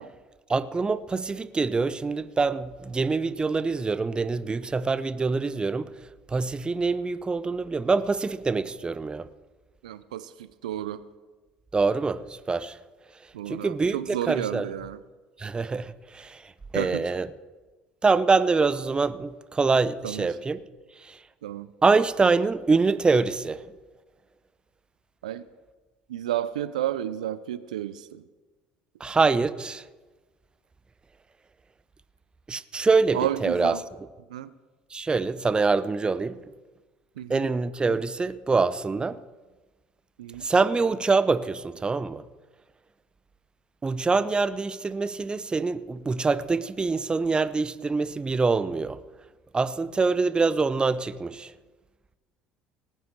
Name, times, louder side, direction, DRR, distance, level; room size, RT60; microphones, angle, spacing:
voice 1, 0.5-5.9 6.3-9.2 11.7-12.2 12.5-12.8 13.5-14.7 15.4-16.4 16.7-17.3 18.0-20.6 21.0-21.2 21.8-23.6 29.0-29.8 32.5-33.8 34.9-36.4 37.3-39.2 40.4-42.2 43.8-49.0 49.5-51.5, right 4 dB, 25° right, 0.7 m, -25 dB
voice 2, 9.8-11.0 13.3-15.0 16.7-17.1 20.0-20.3 21.4-21.7 25.2-25.4 26.1-28.2 33.1-33.8 34.3-34.5 37.2-37.5 40.2-40.4, right 12 dB, 85° right, 0.5 m, -31 dB
19.0 x 9.2 x 4.6 m
hypercardioid pair, 65°, 4 cm